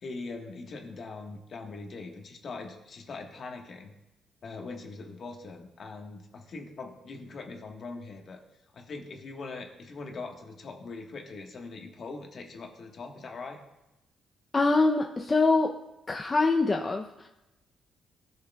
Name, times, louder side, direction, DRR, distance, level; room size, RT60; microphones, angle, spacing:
voice 1, 0.0-3.9 4.4-8.4 8.7-13.6, left 3 dB, 50° left, 2 dB, 1.3 m, -41 dB
voice 2, 14.5-15.7 16.1-17.3, left 3 dB, 25° left, 2 dB, 0.6 m, -24 dB
14.5 x 6.4 x 2.3 m, 0.95 s
cardioid pair, 90°, 0 cm